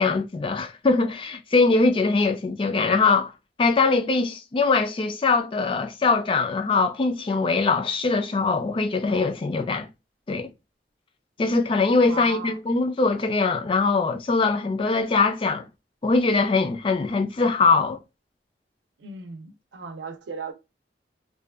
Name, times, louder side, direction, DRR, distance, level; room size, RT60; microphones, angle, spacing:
voice 1, 0.0-3.3 3.6-9.9 10.3-10.5 11.4-15.7 16.0-18.0, left 4 dB, 30° left, 0.3 m, -22 dB
voice 2, 12.0-12.6 19.0-20.5, right 4 dB, 90° right, 0.6 m, -37 dB
2.6 x 2.2 x 2.3 m
head